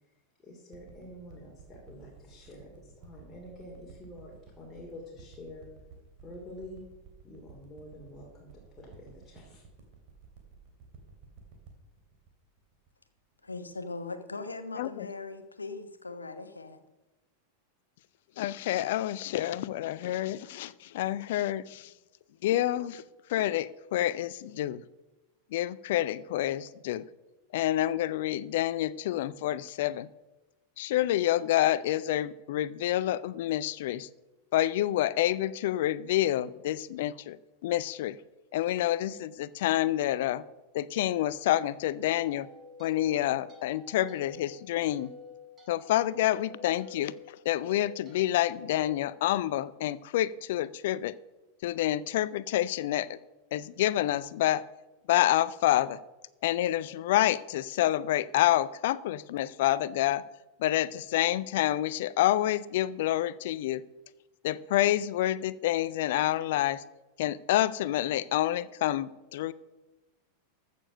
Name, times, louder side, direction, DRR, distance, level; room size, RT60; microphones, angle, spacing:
voice 1, 0.4-5.7 6.2-6.9 7.2-9.6, left 1 dB, 15° left, -3 dB, 3.0 m, -47 dB
sound 1, 0.7-13.5 14.1-14.2, right 5 dB, 45° right, 3.0 m, -53 dB
voice 2, 13.4-16.8, left 3 dB, 80° left, 9 dB, 1.1 m, -40 dB
voice 3, 14.8-15.1 18.4-21.9 22.4-23.0 23.3-24.8 25.5-27.1 27.5-30.1 30.8-34.1 34.5-38.2 38.5-40.4 40.7-42.5 42.8-45.1 45.7-51.2 51.6-53.2 53.5-54.6 55.1-56.0 56.4-60.3 60.6-63.8 64.4-66.8 67.2-69.5, left 13 dB, 55° left, 19 dB, 0.5 m, -28 dB
sound 2, 41.5-49.9, left 4 dB, 20° right, 4.5 m, -50 dB
14.5 x 6.9 x 6.4 m, 1.1 s
figure-of-eight pair, 90°, 0 cm